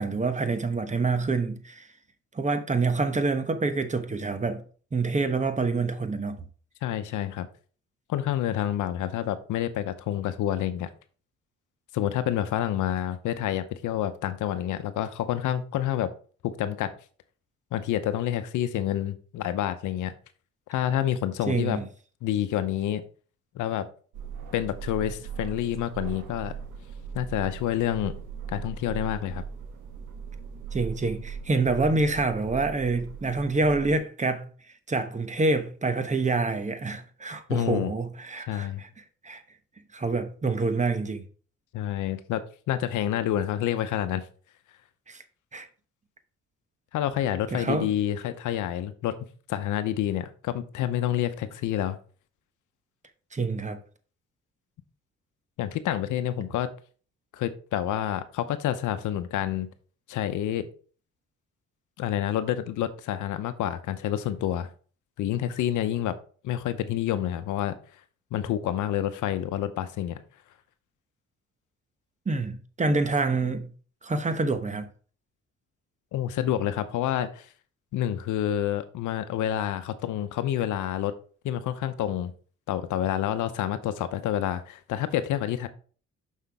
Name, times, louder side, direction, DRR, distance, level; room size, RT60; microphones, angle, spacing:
voice 1, 0.0-1.9 2.3-4.6 4.9-6.4 21.5-21.9 30.7-34.5 34.9-38.9 39.2-39.4 39.9-41.2 45.1-45.2 45.5-45.7 47.5-47.9 53.3-53.8 72.3-73.7 74.0-74.9, right 3 dB, 25° right, 1.0 m, -27 dB
voice 2, 6.8-7.5 8.1-10.9 11.9-16.1 16.4-16.9 17.7-20.1 20.7-21.8 22.2-23.0 23.5-23.9 24.5-26.5 27.1-28.1 28.5-29.4 37.5-37.9 38.5-38.8 41.7-42.4 42.7-44.2 46.9-49.1 49.5-52.0 55.6-56.7 57.3-59.7 60.1-60.7 62.0-64.7 65.2-66.2 66.4-67.7 68.3-70.2 76.1-77.5 77.9-81.1 81.4-82.3 82.7-85.7, left 11 dB, 80° left, 0.8 m, -28 dB
sound 1, 24.1-34.0, right 6 dB, 80° right, 1.3 m, -39 dB
6.4 x 5.7 x 3.5 m
cardioid pair, 90°, 30 cm